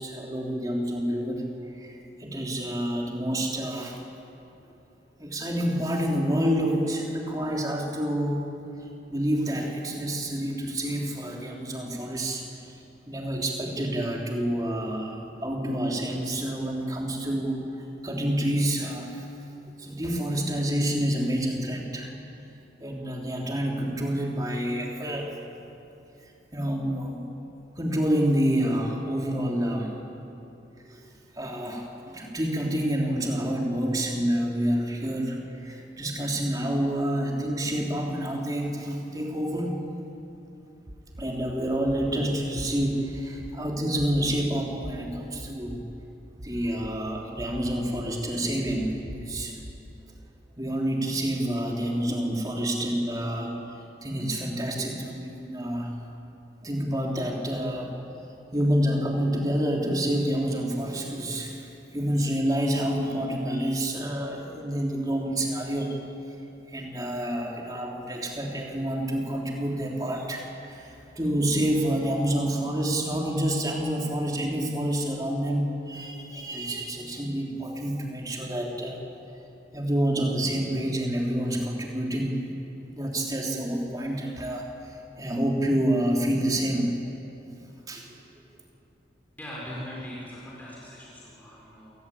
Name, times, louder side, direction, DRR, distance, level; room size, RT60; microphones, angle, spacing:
voice 1, 0.0-1.4 1.7-4.0 5.2-8.5 8.8-12.7 13.1-17.7 18.0-19.3 19.8-22.1 22.8-25.3 26.5-27.3 27.8-30.0 30.8-31.0 31.3-39.8 41.2-45.8 46.4-49.6 50.6-53.5 54.0-55.9 56.6-57.9 58.5-66.0 66.7-79.0 79.7-82.4 82.9-87.0 87.9-88.1, right 1 dB, 20° right, -1 dB, 3.5 m, -28 dB
sound 1, 40.9-41.2 41.9-42.1 42.6-42.7 43.1-43.5 44.0-44.4 44.8-44.9 45.4-45.8 46.4-46.9 47.4-48.0 48.6-49.7, equal, 40° right, 1.6 m, -40 dB
voice 2, 89.4-92.1, equal, 10° left, -5 dB, 4.7 m, -40 dB
27.5 x 19.0 x 8.6 m, 2.9 s
head